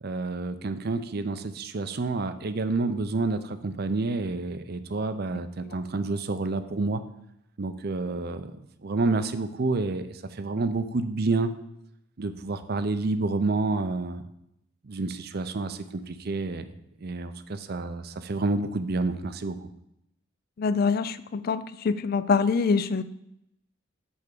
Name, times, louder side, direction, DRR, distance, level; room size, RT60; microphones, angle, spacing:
voice 1, 0.0-7.0 7.6-8.5 8.8-11.5 12.2-14.2 14.8-16.7 17.0-19.6, right 3 dB, 55° right, 10 dB, 0.6 m, -29 dB
voice 2, 20.6-23.0, left 5 dB, 50° left, 14 dB, 0.4 m, -25 dB
8.4 x 3.5 x 6.6 m, 0.80 s
head